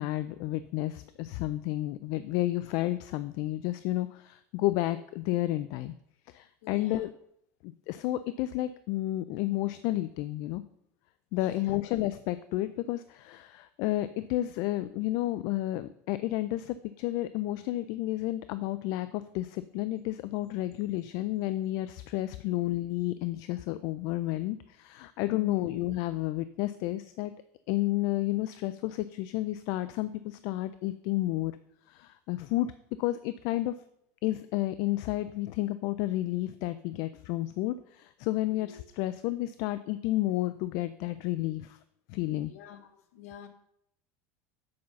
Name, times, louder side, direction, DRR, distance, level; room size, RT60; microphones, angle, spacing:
voice 1, 0.0-5.9 6.3-7.1 7.6-10.6 11.3-27.3 27.7-31.5 31.9-32.7 33.0-33.8 34.2-41.8 42.1-42.5, left 16 dB, 50° left, 0.4 m, -31 dB
voice 2, 6.6-7.1 11.4-11.8 25.3-25.7 38.5-38.8 42.4-43.5, left 12 dB, 90° left, 1.1 m, -44 dB
7.7 x 5.5 x 5.8 m
supercardioid pair, 155°, 8 cm